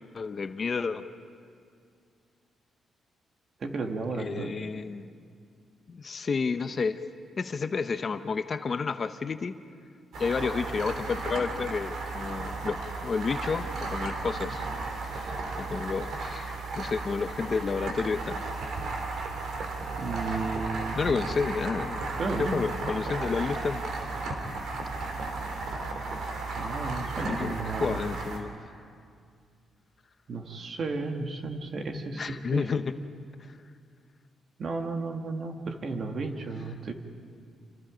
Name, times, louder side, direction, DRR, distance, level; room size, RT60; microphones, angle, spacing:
voice 1, 0.1-1.1 4.2-5.1 5.9-7.0 7.4-9.5 10.2-14.7 15.1-16.5 16.7-18.4 21.0-22.0 22.4-23.8 27.2-28.5 32.1-32.9 33.4-33.5, left 5 dB, 35° left, 10 dB, 0.7 m, -31 dB
voice 2, 3.6-4.5 20.0-21.0 22.2-22.6 26.6-28.0 30.3-32.7 34.6-36.9, right 3 dB, 45° right, 4 dB, 1.8 m, -33 dB
sound 1, 10.1-28.4, right 3 dB, 70° right, 3.3 m, -34 dB
28.0 x 25.5 x 5.1 m, 2.2 s
cardioid pair, 145°, 0 cm